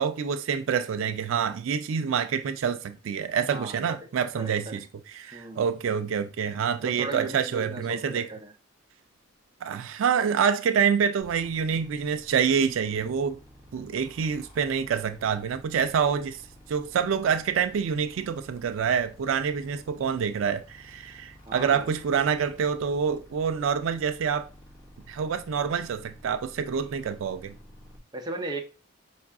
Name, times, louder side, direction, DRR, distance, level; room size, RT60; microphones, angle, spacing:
voice 1, 0.0-8.3 9.6-13.4 13.7-16.4 16.7-24.5 25.1-27.6, right 7 dB, 75° right, 0.3 m, -27 dB
voice 2, 3.5-4.0 4.4-4.8 5.3-5.6 6.8-8.5 21.5-21.9 28.1-28.6, right 2 dB, 20° right, 0.6 m, -36 dB
sound 1, 11.2-28.0, equal, 25° left, 1.4 m, -52 dB
4.6 x 2.4 x 3.5 m
head